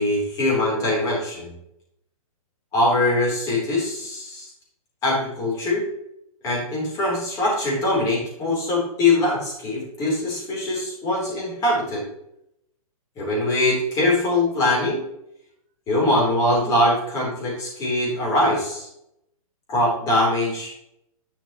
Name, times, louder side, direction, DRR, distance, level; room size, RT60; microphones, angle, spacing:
voice 1, 0.0-1.5 2.7-4.5 5.0-5.8 6.4-12.0 13.2-15.0 15.9-18.9 19.7-20.7, left 1 dB, 20° left, -3 dB, 3.2 m, -22 dB
11.0 x 5.9 x 2.9 m, 0.77 s
hypercardioid pair, 160°, 19 cm